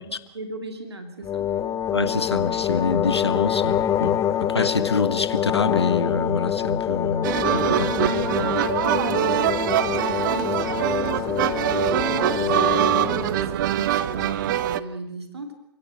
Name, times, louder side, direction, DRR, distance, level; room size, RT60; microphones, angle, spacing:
voice 1, 0.0-1.5 9.1-15.6, right 2 dB, 75° right, 3.0 m, -37 dB
sound 1, 1.2-13.5, left 10 dB, 25° left, 1.3 m, -26 dB
voice 2, 1.9-8.6, left 4 dB, 80° left, 1.7 m, -26 dB
sound 2, 7.2-14.8, right 13 dB, 50° right, 1.0 m, -23 dB
29.5 x 17.0 x 7.9 m
figure-of-eight pair, 105°, 14 cm